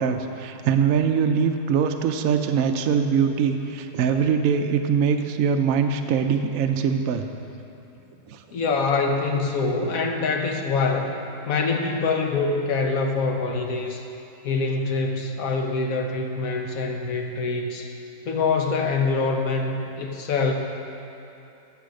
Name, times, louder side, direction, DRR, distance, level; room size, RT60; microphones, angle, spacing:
voice 1, 0.0-7.3 8.3-8.4, right 6 dB, 70° right, 5 dB, 0.8 m, -22 dB
voice 2, 8.5-11.1 11.4-14.0 14.4-17.9 18.2-20.5, left 4 dB, 55° left, 3 dB, 1.3 m, -25 dB
15.5 x 5.6 x 6.4 m, 2.9 s
omnidirectional pair, 1.9 m